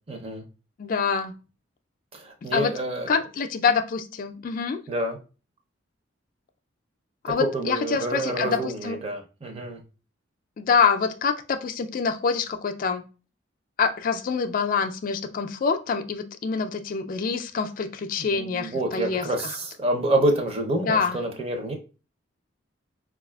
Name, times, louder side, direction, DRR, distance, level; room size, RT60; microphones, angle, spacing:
voice 1, 0.1-0.4 2.1-3.1 4.9-5.2 7.4-9.8 18.2-21.7, right 1 dB, 30° right, 4 dB, 0.6 m, -27 dB
voice 2, 0.8-1.3 2.4-2.7 3.1-4.8 7.2-9.0 10.6-13.0 13.8-19.6 20.8-21.2, left 5 dB, 45° left, 7 dB, 0.3 m, -26 dB
4.8 x 2.4 x 2.2 m, 0.34 s
head